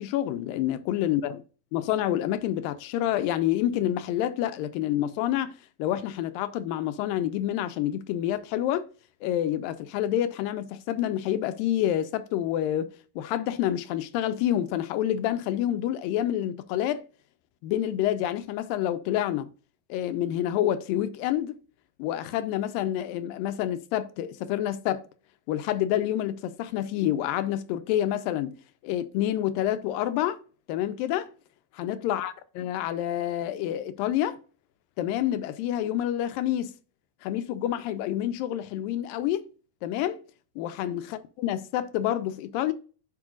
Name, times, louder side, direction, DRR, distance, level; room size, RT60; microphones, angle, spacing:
voice 1, 0.0-1.3 1.7-5.5 5.8-8.9 9.2-17.1 17.6-19.5 19.9-21.6 22.0-25.0 25.5-28.5 28.8-30.4 30.7-31.3 31.7-34.4 35.0-36.7 37.2-39.5 39.8-40.2 40.6-42.7, left 12 dB, 85° left, 2.3 m, -28 dB
10.5 x 4.7 x 2.4 m
omnidirectional pair, 4.1 m